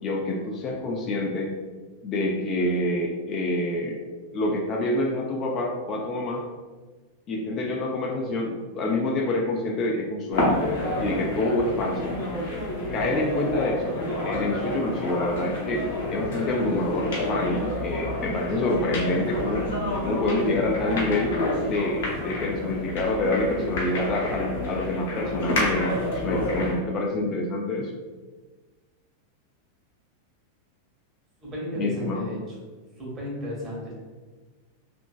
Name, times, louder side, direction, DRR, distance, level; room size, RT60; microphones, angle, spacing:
voice 1, 0.0-1.5 2.0-4.0 4.3-6.4 7.3-10.6 11.0-12.1 12.9-14.0 14.2-15.8 16.1-19.6 20.0-21.3 21.7-27.9 31.8-32.3, left 2 dB, 35° left, 0 dB, 0.3 m, -27 dB
sound 1, 10.3-26.8, left 1 dB, 55° left, 0.7 m, -29 dB
voice 2, 31.4-32.5 33.0-34.0, right 1 dB, 25° right, -4 dB, 1.0 m, -34 dB
2.8 x 2.5 x 2.3 m, 1.3 s
figure-of-eight pair, 90°, 0 cm